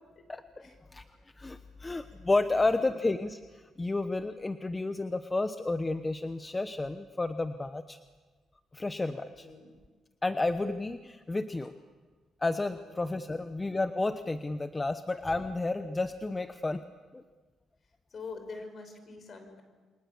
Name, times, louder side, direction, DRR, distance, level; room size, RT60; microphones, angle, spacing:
voice 1, 1.4-3.4 3.8-8.0 8.7-9.5 10.2-11.7 12.4-16.8 17.1-17.2, left 2 dB, 20° left, 10 dB, 1.0 m, -31 dB
voice 2, 2.5-3.0 9.1-9.7 11.6-11.7 12.7-12.9 13.2-13.5 17.8-19.6, left 4 dB, 45° left, 7 dB, 5.8 m, -46 dB
29.0 x 24.0 x 7.2 m, 1.4 s
cardioid pair, 90°, 0 cm